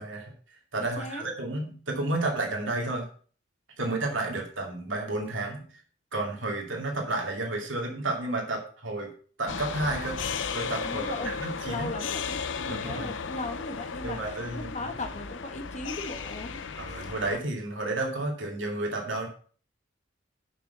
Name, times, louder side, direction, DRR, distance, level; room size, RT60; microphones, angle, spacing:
voice 1, 0.0-3.0 3.8-5.7 6.1-9.1 9.4-11.9 12.7-13.1 14.0-14.7 16.8-19.3, right 2 dB, 80° right, 1 dB, 2.6 m, -31 dB
voice 2, 0.8-1.2 10.8-11.3 11.7-17.0, left 2 dB, 35° left, 6 dB, 1.5 m, -38 dB
sound 1, 9.5-17.4, left 5 dB, 75° left, 0.7 m, -35 dB
7.0 x 6.1 x 6.9 m, 0.43 s
head